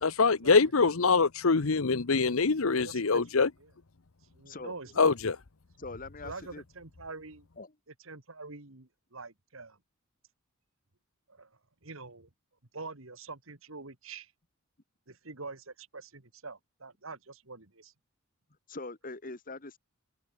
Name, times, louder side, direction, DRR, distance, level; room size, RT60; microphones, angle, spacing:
voice 1, 0.0-3.5 5.0-5.3, left 4 dB, 70° left, 0.9 m, -24 dB
voice 2, 2.7-3.3 3.6-3.7 4.3-5.2 6.2-7.5 8.0-9.8 11.3-12.3 12.7-14.3 15.1-17.9, right 3 dB, 65° right, 2.3 m, -45 dB
voice 3, 4.5-5.1 5.8-6.6 7.6-7.7 18.7-19.8, left 3 dB, 40° left, 1.8 m, -43 dB
head